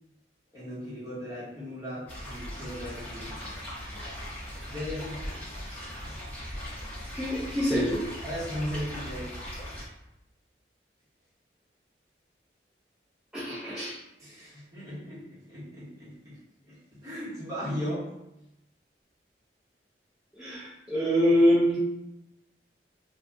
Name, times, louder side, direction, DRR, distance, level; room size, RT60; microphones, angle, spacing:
voice 1, 0.5-3.4 4.7-5.2 6.0-6.2 8.2-9.4 14.2-18.1, equal, 20° right, -10 dB, 1.4 m, -37 dB
sound 1, 2.1-9.8, equal, 10° left, 1.2 m, -39 dB
voice 2, 7.1-8.0 13.3-14.0 20.3-21.8, equal, 5° right, -11 dB, 0.7 m, -25 dB
2.6 x 2.5 x 3.5 m, 0.88 s
head